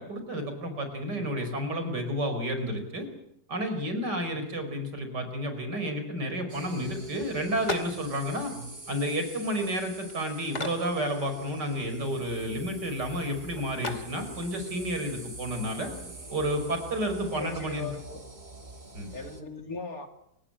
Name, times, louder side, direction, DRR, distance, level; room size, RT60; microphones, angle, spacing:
voice 1, 0.0-3.1 3.5-8.5 8.9-15.9 16.3-17.9 18.9-19.1, equal, 90° right, 7 dB, 5.5 m, -31 dB
sound 1, 6.5-19.4, right 2 dB, 25° right, 2.7 m, -45 dB
sound 2, 7.2-17.6, left 3 dB, 45° left, 2.9 m, -43 dB
voice 2, 15.6-16.1 17.1-18.2 19.1-20.1, left 3 dB, 60° left, 5 dB, 3.5 m, -40 dB
29.0 x 17.5 x 8.8 m, 0.77 s
omnidirectional pair, 1.8 m